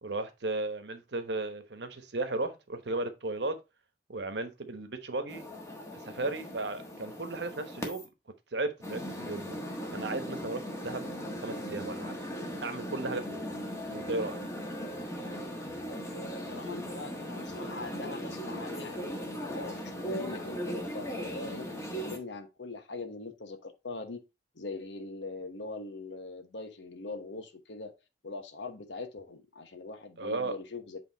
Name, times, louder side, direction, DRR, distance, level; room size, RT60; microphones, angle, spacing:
voice 1, 0.0-3.6 4.1-5.4 6.0-8.1 8.5-9.6 9.9-11.1 11.4-12.2 12.6-13.4 13.9-14.4 30.2-30.5, right 2 dB, 70° right, 1.1 m, -35 dB
sound 1, 5.3-8.1 8.8-22.2, equal, 15° left, 1.3 m, -38 dB
voice 2, 15.9-24.2 24.5-27.9 28.2-31.0, left 3 dB, 90° left, 1.1 m, -42 dB
7.8 x 3.4 x 4.0 m
head